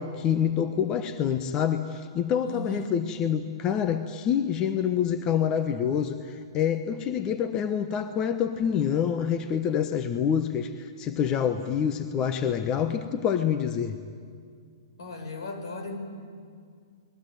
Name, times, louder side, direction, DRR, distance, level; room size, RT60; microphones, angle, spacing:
voice 1, 0.0-14.0, left 8 dB, 25° left, 9 dB, 1.2 m, -27 dB
voice 2, 2.4-3.0 15.0-16.0, left 2 dB, 75° left, 6 dB, 5.5 m, -36 dB
29.0 x 21.0 x 9.3 m, 2.2 s
hypercardioid pair, 140°, 2 cm